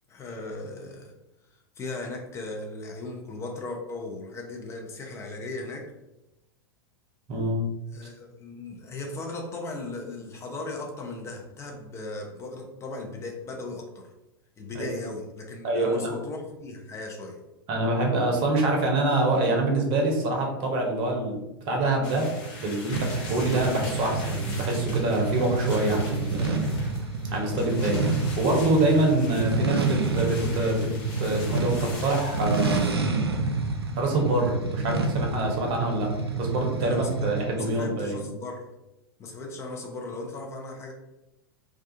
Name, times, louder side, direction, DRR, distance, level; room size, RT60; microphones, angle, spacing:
voice 1, 0.1-1.1 1.8-5.9 7.9-14.1 14.6-17.4 36.8-37.3 37.6-38.7 39.2-40.9, left 2 dB, 20° left, 1 dB, 0.5 m, -37 dB
voice 2, 7.3-7.6 14.7-15.0 15.6-16.1 17.7-22.3 22.6-26.9 27.3-30.9 31.2-32.9 34.0-36.1 36.4-38.2, right 2 dB, 40° right, 1 dB, 0.8 m, -25 dB
sound 1, 22.0-32.9, left 2 dB, 45° left, 0.9 m, -41 dB
sound 2, 22.9-37.6, right 3 dB, 90° right, 0.4 m, -29 dB
2.4 x 2.3 x 2.6 m, 0.95 s
figure-of-eight pair, 95°, 13 cm